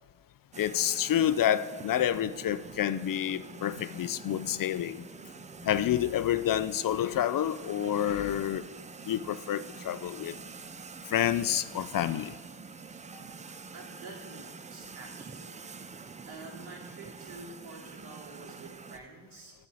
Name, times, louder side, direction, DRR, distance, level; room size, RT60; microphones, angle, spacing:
sound 1, 0.5-19.0, right 5 dB, 15° right, 0.3 m, -46 dB
voice 1, 0.6-5.1 5.6-8.6 9.1-10.4 11.1-12.3, left 11 dB, 45° left, 14 dB, 0.5 m, -28 dB
voice 2, 13.7-15.6 16.3-19.5, right 3 dB, 80° right, -3 dB, 3.0 m, -48 dB
10.5 x 4.5 x 7.7 m, 1.4 s
supercardioid pair, 70°, 47 cm